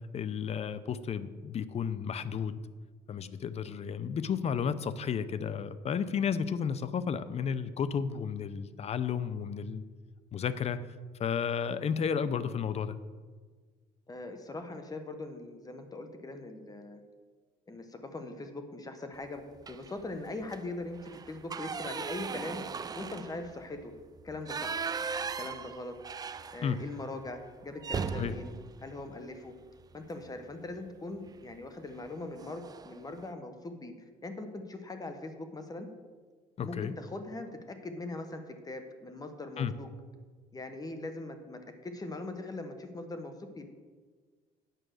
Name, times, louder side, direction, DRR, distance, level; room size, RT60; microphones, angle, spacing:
voice 1, 0.1-2.6 3.1-9.8 10.3-10.8 11.2-13.0 26.6-26.8 28.2-28.3 36.6-36.9 39.6-39.7, left 7 dB, 40° left, 14 dB, 0.6 m, -32 dB
voice 2, 14.1-17.0 17.7-22.6 22.9-23.9 24.2-24.9 25.3-26.0 26.5-28.5 28.8-29.5 29.9-33.9 34.2-35.9 36.6-39.9 40.5-43.7, left 2 dB, 20° left, 7 dB, 1.1 m, -41 dB
sound 1, 19.6-20.0 20.4-20.6 20.9-27.0 27.3-27.4 27.8-29.9 31.3-31.6 31.9-32.1 32.4-33.0, right 5 dB, 25° right, 0.3 m, -38 dB
9.1 x 5.9 x 6.4 m, 1.5 s
cardioid pair, 110°, 17 cm